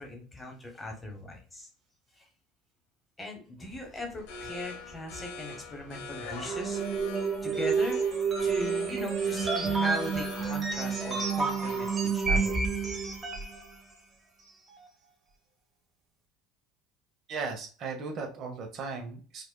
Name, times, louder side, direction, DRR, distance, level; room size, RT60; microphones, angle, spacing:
voice 1, 0.0-1.7 2.2-2.3 3.2-6.8 7.4-8.1 8.4-12.7, left 1 dB, 15° left, 3 dB, 1.0 m, -39 dB
sound 1, 3.6-13.2, left 3 dB, 85° left, 0.9 m, -44 dB
sound 2, 6.5-13.6, right 5 dB, 20° right, 0.9 m, -29 dB
voice 2, 17.3-19.4, right 4 dB, 45° right, 4 dB, 0.9 m, -36 dB
4.9 x 2.4 x 2.3 m, 0.37 s
supercardioid pair, 125°, 0 cm